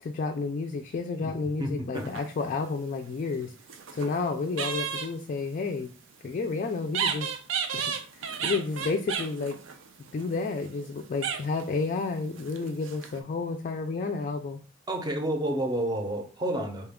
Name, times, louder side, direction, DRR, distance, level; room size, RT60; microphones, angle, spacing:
voice 1, 0.0-3.5 3.9-5.9 6.2-7.3 7.7-9.6 10.1-14.6, left 4 dB, 45° left, 5 dB, 0.3 m, -31 dB
voice 2, 1.6-2.1 14.9-16.9, right 1 dB, 20° right, 4 dB, 0.6 m, -30 dB
sound 1, 1.9-2.7 3.4-4.2 4.5-5.1 6.9-10.9 11.2-11.7 12.4-13.2, right 7 dB, 75° right, 0.5 m, -33 dB
4.2 x 2.3 x 3.5 m, 0.39 s
head